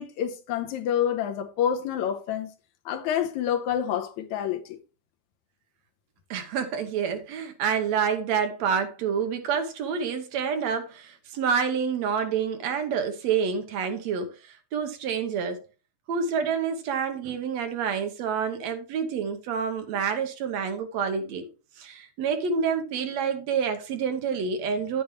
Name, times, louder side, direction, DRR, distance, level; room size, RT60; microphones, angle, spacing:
voice 1, 0.0-2.5 2.9-4.8, left 9 dB, 80° left, 2.2 m, -28 dB
voice 2, 6.3-15.6 16.1-21.5 21.8-25.0, right 6 dB, 70° right, 2.1 m, -28 dB
10.0 x 8.8 x 3.1 m
omnidirectional pair, 3.4 m